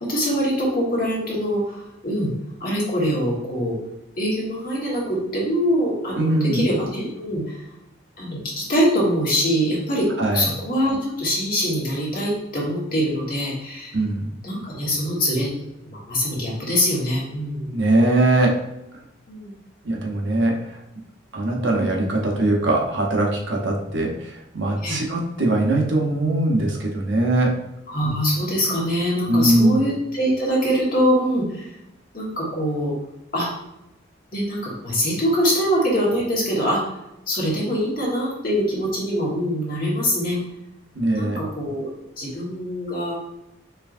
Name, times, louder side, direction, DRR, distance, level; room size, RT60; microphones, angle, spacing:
voice 1, 0.1-2.3 2.6-3.8 4.2-7.4 8.2-10.1 10.3-13.9 14.4-15.5 15.8-17.8 19.3-19.5 24.8-25.0 27.9-31.7 32.1-32.9 33.3-33.5 34.3-36.9 37.3-40.4 41.1-43.1, equal, 45° left, -5 dB, 1.5 m, -23 dB
voice 2, 6.2-6.6 10.2-10.5 13.9-14.3 17.7-18.6 19.8-20.8 21.3-27.6 29.3-29.8 40.9-41.4, right 1 dB, 65° right, 0 dB, 0.8 m, -21 dB
4.5 x 3.3 x 2.6 m, 0.88 s
head